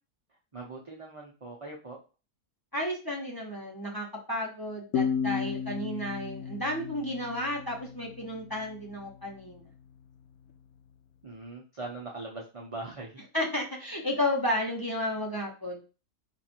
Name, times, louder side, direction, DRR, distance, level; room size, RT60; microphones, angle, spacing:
voice 1, 0.5-2.0 11.2-13.2, right 2 dB, 40° right, -3 dB, 0.5 m, -41 dB
voice 2, 2.7-9.7 13.3-15.8, left 1 dB, 15° left, -2 dB, 0.9 m, -32 dB
sound 1, 4.9-8.4, left 7 dB, 75° left, 1.1 m, -33 dB
4.8 x 2.5 x 4.4 m, 0.33 s
omnidirectional pair, 1.7 m